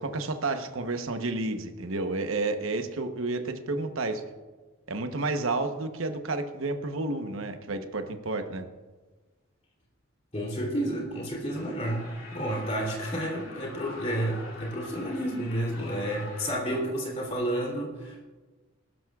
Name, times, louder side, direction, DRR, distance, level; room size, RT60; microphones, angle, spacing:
voice 1, 0.0-4.2 4.9-8.7, right 2 dB, 75° right, 7 dB, 1.0 m, -31 dB
voice 2, 10.3-12.0 12.3-18.2, right 1 dB, 30° left, -1 dB, 3.0 m, -30 dB
sound 1, 11.5-16.5, left 2 dB, 80° left, 3.8 m, -45 dB
20.0 x 12.5 x 2.4 m, 1.3 s
head